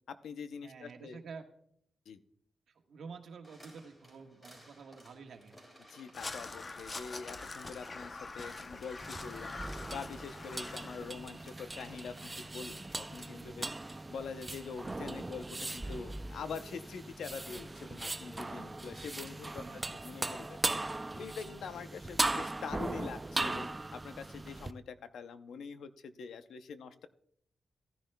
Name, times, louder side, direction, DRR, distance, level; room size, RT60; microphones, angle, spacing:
voice 1, 0.1-1.2 2.1-2.2 5.9-9.6 9.9-13.7 14.1-20.6 20.9-27.1, left 6 dB, 80° left, 11 dB, 0.6 m, -45 dB
voice 2, 0.6-1.4 2.7-5.6 13.3-13.7 18.5-18.8 19.6-20.0, right 5 dB, 70° right, 4 dB, 1.4 m, -50 dB
sound 1, 3.4-13.4, equal, 15° left, 4.0 m, -58 dB
Crow, 6.1-11.1, left 3 dB, 35° left, 0.7 m, -44 dB
sound 2, 9.0-24.7, right 2 dB, 20° right, 0.4 m, -39 dB
15.5 x 10.5 x 2.2 m, 0.69 s
cardioid pair, 95°, 0 cm